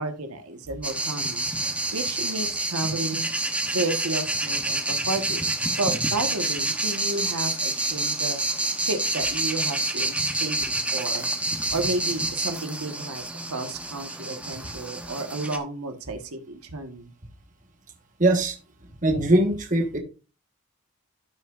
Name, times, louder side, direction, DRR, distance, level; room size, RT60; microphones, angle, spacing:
voice 1, 0.0-1.5 1.9-3.3 3.7-5.5 5.8-8.4 8.8-11.3 11.7-13.2 13.5-17.1, right 2 dB, 80° right, 6 dB, 1.3 m, -32 dB
sound 1, 0.8-15.6, right 2 dB, 5° right, 0.9 m, -28 dB
voice 2, 18.2-18.6 19.0-20.0, right 1 dB, 35° right, 4 dB, 1.4 m, -21 dB
13.5 x 6.0 x 2.5 m, 0.33 s
head